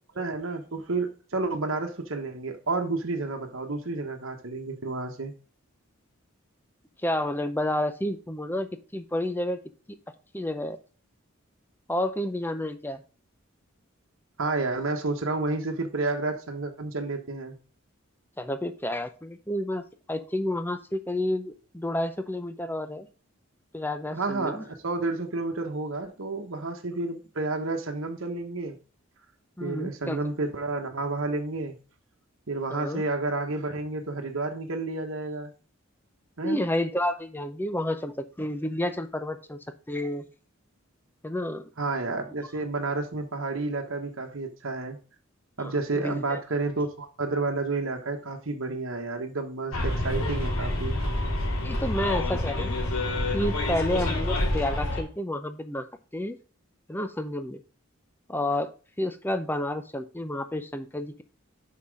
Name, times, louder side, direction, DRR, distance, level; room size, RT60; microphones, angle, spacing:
voice 1, 0.1-5.3 14.4-17.6 24.1-28.8 29.6-31.8 32.5-35.5 36.4-36.6 41.8-45.0 45.6-51.0, right 3 dB, 65° right, 1.2 m, -30 dB
voice 2, 7.0-9.6 10.3-10.8 11.9-13.0 18.4-19.8 20.1-23.1 23.7-24.6 29.6-30.2 32.7-33.0 36.4-39.6 39.9-40.3 41.2-41.6 45.6-46.4 51.4-52.8 53.3-55.9 56.1-56.4 56.9-57.6 58.3-58.7 59.0-61.2, left 1 dB, 10° left, 0.6 m, -30 dB
Bus, 49.7-55.0, left 1 dB, 80° left, 2.4 m, -27 dB
5.9 x 5.7 x 4.7 m
head